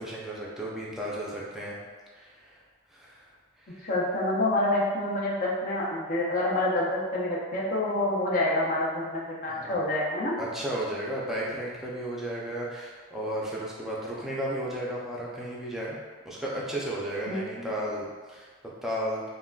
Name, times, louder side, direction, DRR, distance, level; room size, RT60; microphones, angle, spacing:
voice 1, 0.0-1.8 2.1-2.6 2.9-3.3 3.6-3.9 9.5-9.8 10.4-16.0 16.3-18.5 18.8-19.2, right 1 dB, ahead, -6 dB, 0.4 m, -34 dB
voice 2, 3.8-10.3 17.3-17.4, left 1 dB, 45° left, -4 dB, 0.6 m, -27 dB
3.7 x 2.2 x 2.3 m, 1.4 s
head